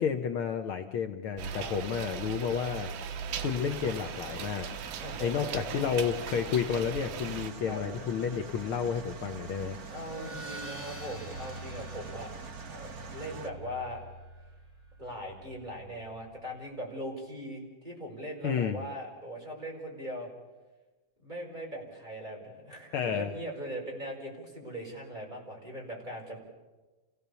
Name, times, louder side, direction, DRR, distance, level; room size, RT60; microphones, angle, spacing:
voice 1, 0.0-2.9 3.4-4.7 5.2-9.8 18.4-18.8 22.9-23.3, left 7 dB, 80° left, 6 dB, 1.2 m, -31 dB
sound 1, 1.4-7.5, right 7 dB, 75° right, 2.4 m, -39 dB
sound 2, 3.3-13.5, right 4 dB, 55° right, 1.0 m, -44 dB
voice 2, 5.0-5.8 7.6-7.8 9.9-12.3 12.6-14.0 15.0-20.3 21.2-26.4, equal, 15° right, -2 dB, 4.9 m, -40 dB
sound 3, 9.5-16.5, right 1 dB, 5° left, 3.0 m, -47 dB
28.0 x 16.5 x 6.9 m, 1.2 s
omnidirectional pair, 3.6 m